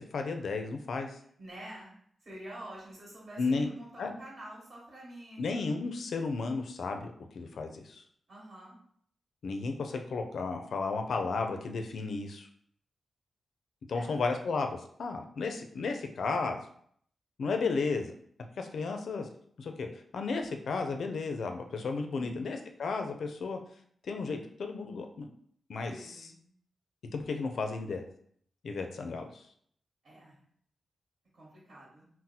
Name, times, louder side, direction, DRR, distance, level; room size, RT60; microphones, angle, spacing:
voice 1, 0.0-1.2 3.4-3.7 4.0-4.1 5.4-8.0 9.4-12.5 13.9-16.6 17.4-18.1 18.6-19.3 19.6-19.9 20.1-23.6 24.0-25.3 25.7-25.9 27.1-28.0 28.6-29.4, left 4 dB, 75° left, 5 dB, 0.4 m, -33 dB
voice 2, 1.4-1.9 2.2-5.4 8.3-8.8 13.9-14.2 22.1-22.5 25.8-26.4 30.0-30.4 31.3-32.0, right 1 dB, 60° right, -5 dB, 1.2 m, -47 dB
2.7 x 2.0 x 4.0 m, 0.64 s
cardioid pair, 70°, 0 cm